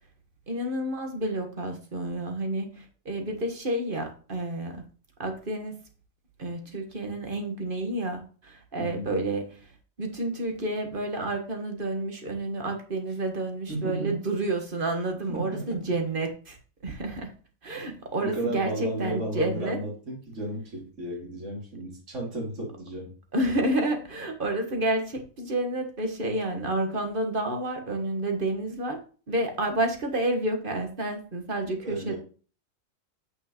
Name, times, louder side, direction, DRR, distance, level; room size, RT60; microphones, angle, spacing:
voice 1, 0.5-4.9 5.2-5.8 6.4-9.7 10.0-16.6 16.8-17.3 17.6-19.8 23.3-29.0 29.3-32.1, right 1 dB, 40° right, 5 dB, 1.6 m, -30 dB
voice 2, 8.8-9.1 13.7-14.2 15.3-15.8 18.2-23.1 31.8-32.2, right 1 dB, 60° right, -3 dB, 3.0 m, -33 dB
8.4 x 6.6 x 3.0 m, 0.38 s
omnidirectional pair, 1.4 m